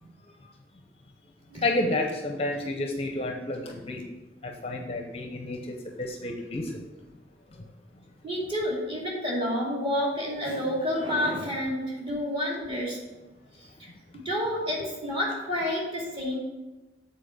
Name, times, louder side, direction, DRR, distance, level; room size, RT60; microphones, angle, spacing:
voice 1, 1.6-4.1 4.4-6.8, left 2 dB, 30° left, 3 dB, 0.6 m, -30 dB
voice 2, 8.2-13.0 13.8-13.9 14.1-16.4, left 1 dB, 30° right, -4 dB, 2.3 m, -29 dB
7.5 x 4.2 x 6.3 m, 1.1 s
head